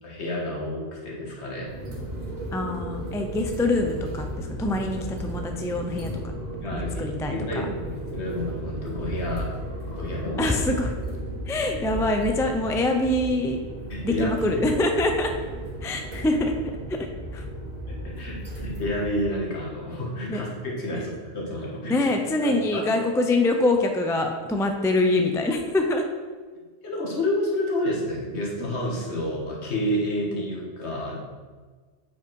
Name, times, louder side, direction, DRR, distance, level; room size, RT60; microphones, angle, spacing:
voice 1, 0.0-1.7 6.6-9.5 9.9-10.6 13.9-14.3 17.9-22.1 22.4-23.1 26.8-31.2, left 1 dB, 70° left, -2 dB, 1.8 m, -30 dB
sound 1, 1.6-19.2, right 1 dB, 40° right, 1.6 m, -35 dB
voice 2, 2.5-6.1 6.7-7.7 10.4-10.9 11.5-13.6 14.0-15.3 15.8-16.5 16.9-17.1 17.3-17.5 20.3-20.4 20.9-21.0 21.9-26.0, left 2 dB, 5° left, 4 dB, 0.3 m, -24 dB
8.1 x 4.9 x 4.7 m, 1.5 s
omnidirectional pair, 1.2 m